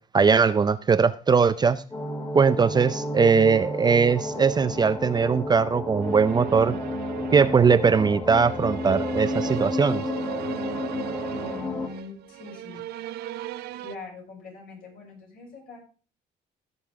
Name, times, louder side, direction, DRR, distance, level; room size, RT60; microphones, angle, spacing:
voice 1, 0.1-1.8 2.3-6.7 7.3-10.0, right 5 dB, 25° right, 13 dB, 0.5 m, -20 dB
sound 1, 1.9-11.9, left 2 dB, 25° left, 2.2 m, -31 dB
sound 2, 6.0-14.0, right 14 dB, 70° right, 0.5 m, -37 dB
voice 2, 11.3-12.8 13.8-15.8, left 4 dB, 60° left, -1 dB, 6.4 m, -42 dB
16.0 x 7.0 x 3.6 m, 0.37 s
cardioid pair, 110°, 17 cm